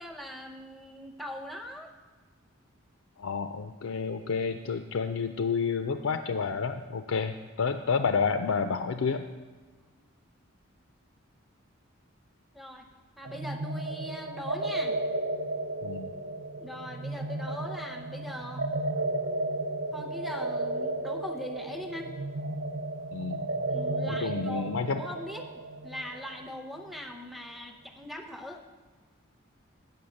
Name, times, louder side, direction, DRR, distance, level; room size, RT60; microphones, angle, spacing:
voice 1, 0.0-1.9 9.9-10.0 12.5-12.8 13.2-15.0 16.6-18.7 19.9-22.1 23.7-25.5 25.8-28.6, left 1 dB, ahead, 4 dB, 0.6 m, -41 dB
voice 2, 3.2-9.3 15.8-16.1 23.1-23.4 24.1-25.0, left 5 dB, 80° left, 8 dB, 0.4 m, -30 dB
sound 1, 13.3-26.8, right 2 dB, 55° right, 0.5 m, -33 dB
8.5 x 6.3 x 6.4 m, 1.3 s
head